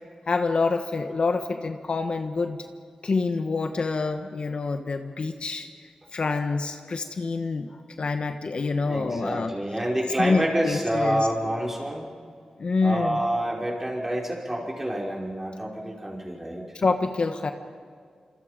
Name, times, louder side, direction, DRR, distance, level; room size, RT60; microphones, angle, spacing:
voice 1, 0.3-2.6 3.0-5.7 6.1-9.5 10.2-11.3 12.6-13.2 16.7-17.5, left 4 dB, 60° left, 6 dB, 1.3 m, -26 dB
voice 2, 8.8-12.0 12.8-16.7, right 1 dB, 15° right, -2 dB, 5.4 m, -28 dB
27.0 x 27.0 x 5.2 m, 2.1 s
wide cardioid pair, 90°, 2 cm